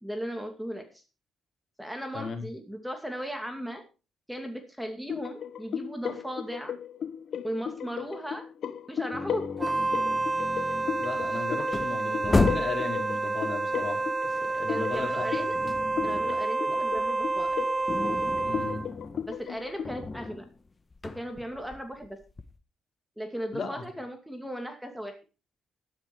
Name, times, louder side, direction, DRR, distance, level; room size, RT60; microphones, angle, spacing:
voice 1, 0.0-1.0 1.8-3.8 4.3-6.7 7.4-8.4 8.9-9.6 14.7-15.6 16.0-17.5 19.3-20.4 21.0-22.2 23.2-25.2, equal, 5° right, 6 dB, 2.5 m, -36 dB
voice 2, 2.1-2.4 11.0-15.3 16.7-16.8 17.4-17.5 18.4-18.8 23.5-23.8, left 4 dB, 45° left, 3 dB, 4.9 m, -36 dB
sound 1, 5.1-20.0, left 8 dB, 65° left, 1.1 m, -36 dB
sound 2, 9.1-12.9 14.3-16.5 16.8-22.6, left 3 dB, 25° left, 1.4 m, -33 dB
Wind instrument woodwind instrument, 9.6-18.9, right 3 dB, 20° right, 0.7 m, -29 dB
13.0 x 11.5 x 4.6 m, 0.32 s
cardioid pair, 90°, 0 cm